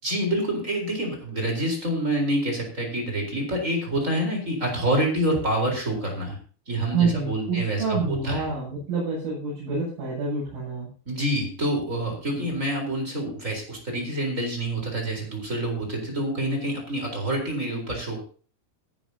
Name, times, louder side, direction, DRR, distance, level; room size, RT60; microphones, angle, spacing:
voice 1, 0.0-6.4 6.7-8.4 11.1-18.2, right 1 dB, 15° right, 1 dB, 3.6 m, -27 dB
voice 2, 6.9-10.9 12.3-12.6, right 4 dB, 85° right, -7 dB, 9.8 m, -27 dB
20.0 x 10.5 x 2.8 m, 0.39 s
omnidirectional pair, 5.9 m